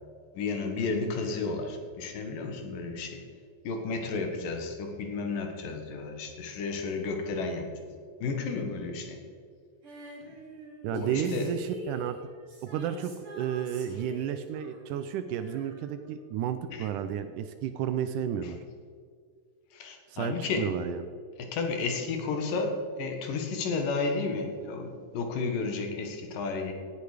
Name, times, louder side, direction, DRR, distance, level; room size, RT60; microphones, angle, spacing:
voice 1, 0.3-3.2 3.6-7.7 8.2-9.2 10.9-11.5 16.7-16.9 18.4-18.5 19.7-20.7 21.4-26.7, left 4 dB, 75° left, 4 dB, 3.1 m, -32 dB
Female singing, 9.8-16.5 16.7-16.8, right 2 dB, 40° right, 3.1 m, -47 dB
voice 2, 10.8-12.2 12.6-18.6 20.1-21.1, right 9 dB, 80° right, 10 dB, 2.0 m, -32 dB
17.0 x 8.5 x 5.0 m, 2.1 s
omnidirectional pair, 4.0 m